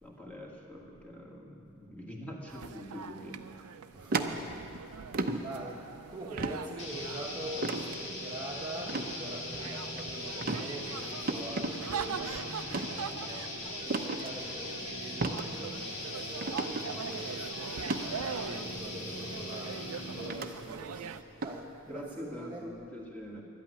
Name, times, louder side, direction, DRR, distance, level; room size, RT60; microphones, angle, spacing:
voice 1, 0.0-3.4 4.3-4.5 21.9-23.4, equal, 5° left, -2 dB, 1.9 m, -44 dB
sound 1, 2.5-21.2, right 6 dB, 85° right, 0.5 m, -43 dB
voice 2, 3.9-5.1 5.4-5.9 6.1-12.3 12.9-17.3 17.7-19.8 20.1-21.2 21.4-22.7, right 1 dB, 20° right, -4 dB, 1.1 m, -44 dB
sound 2, 4.1-4.8 5.1-5.4 6.4-6.6 7.6-7.9 8.9-9.1 9.6-10.0 10.4-10.6 11.3-11.7 12.6-12.9 13.9-14.2 15.2-15.4 15.8-15.9 16.4-16.8 17.8-18.0 19.1-19.2 20.3-20.5 21.4-21.6, right 3 dB, 40° right, 0.7 m, -32 dB
sound 3, 6.8-20.5, left 1 dB, 50° left, 2.5 m, -40 dB
12.5 x 8.7 x 9.7 m, 2.6 s
head